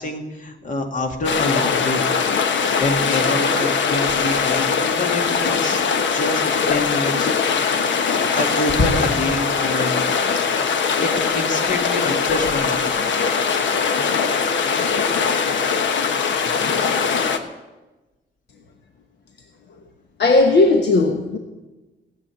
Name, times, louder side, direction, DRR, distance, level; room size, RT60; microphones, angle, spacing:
voice 1, 0.0-2.0 2.8-6.4 6.7-7.3 8.3-10.1 11.0-12.9, left 2 dB, 45° left, 4 dB, 2.2 m, -26 dB
sound 1, 1.2-17.4, left 5 dB, 85° left, 1.2 m, -21 dB
voice 2, 20.2-21.4, left 3 dB, 65° left, 4 dB, 1.3 m, -16 dB
16.5 x 7.9 x 9.1 m, 1.1 s
wide cardioid pair, 175°, 19 cm